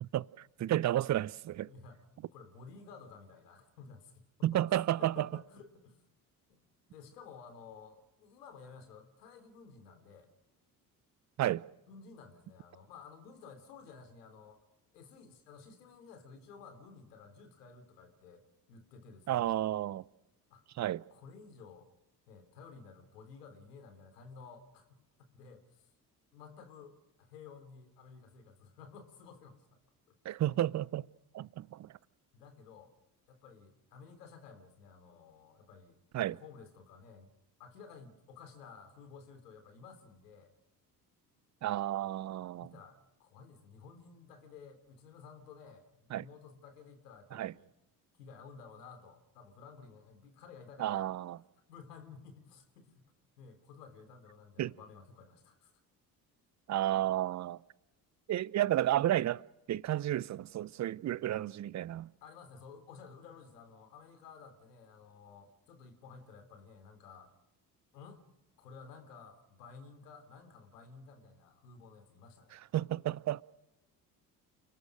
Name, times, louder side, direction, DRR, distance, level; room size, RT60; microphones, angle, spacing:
voice 1, 0.6-1.7 4.4-5.3 11.4-11.6 19.3-20.0 20.8-21.0 30.2-31.1 31.3-31.9 36.1-36.4 41.6-42.7 46.1-46.2 47.3-47.5 50.8-51.4 54.6-54.7 56.7-57.6 58.3-59.4 59.7-62.1 72.7-73.4, right 13 dB, 35° right, 0.7 m, -32 dB
voice 2, 1.7-4.1 4.4-6.0 6.5-6.6 6.9-10.3 11.9-14.6 14.9-19.5 20.5-20.7 21.1-21.9 22.3-25.9 26.3-29.8 30.1-30.2 32.3-32.9 33.3-36.0 36.2-37.3 37.6-40.5 42.5-47.7 48.2-51.1 51.7-55.7 62.2-67.3 67.9-68.2 68.6-72.6, left 5 dB, 75° left, 3.4 m, -54 dB
29.5 x 19.5 x 6.3 m
figure-of-eight pair, 50°, 48 cm